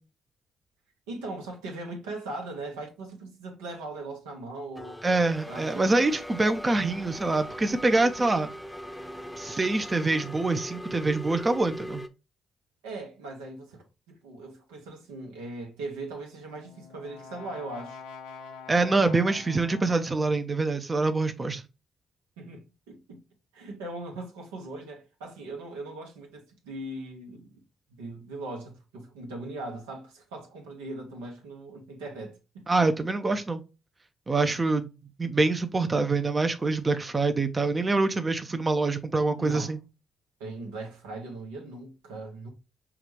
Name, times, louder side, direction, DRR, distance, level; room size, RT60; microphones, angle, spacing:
voice 1, 1.1-5.0 5.5-6.0 12.8-18.0 22.4-23.2 23.5-27.6 28.0-32.6 39.4-39.8 40.4-42.5, right 2 dB, 85° right, 1.0 m, -39 dB
sound 1, 4.8-12.1, equal, 5° left, 0.7 m, -40 dB
voice 2, 5.0-8.5 9.4-12.0 18.7-21.6 32.7-33.6 34.3-34.9 35.2-39.8, right 3 dB, 30° right, 0.6 m, -25 dB
Brass instrument, 16.3-20.4, left 5 dB, 85° left, 0.8 m, -46 dB
5.9 x 2.4 x 3.1 m
hypercardioid pair, 45°, 0 cm